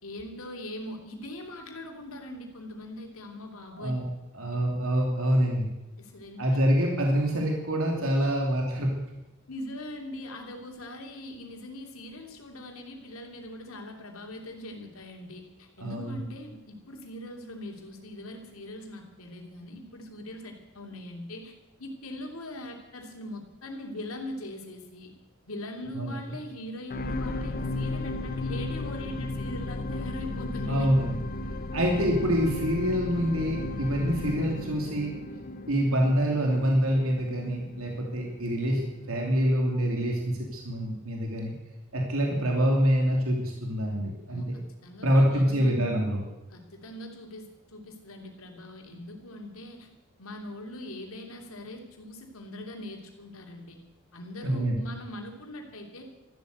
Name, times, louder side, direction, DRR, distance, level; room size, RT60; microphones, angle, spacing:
voice 1, 0.0-4.0 4.5-4.6 6.0-6.6 8.2-8.3 9.5-21.5 21.8-25.1 25.5-31.1 44.3-45.8 46.5-49.9 50.2-53.8 54.1-56.0, left 1 dB, 90° left, 2 dB, 3.1 m, -41 dB
voice 2, 4.3-5.7 6.4-8.9 15.8-16.2 25.9-26.1 30.7-31.1 31.7-35.2 35.7-38.8 39.1-41.5 41.9-44.4 45.0-46.2 54.4-54.8, equal, 85° right, 0 dB, 3.0 m, -26 dB
sound 1, 26.9-39.3 39.9-40.0, left 2 dB, 45° left, 0.9 m, -35 dB
14.0 x 12.5 x 8.2 m, 0.96 s
head